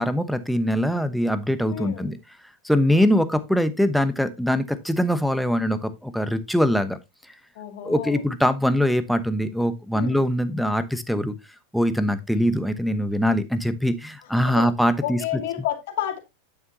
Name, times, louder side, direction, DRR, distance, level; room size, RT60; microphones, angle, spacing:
voice 1, 0.0-2.2 2.6-7.0 7.8-11.3 11.7-15.2, equal, ahead, 1.0 m, -22 dB
voice 2, 1.7-2.1 7.6-8.2 9.9-10.3 14.4-14.7 15.0-16.2, left 11 dB, 65° left, 2.4 m, -30 dB
9.0 x 7.2 x 2.8 m
hypercardioid pair, 100°, 0 cm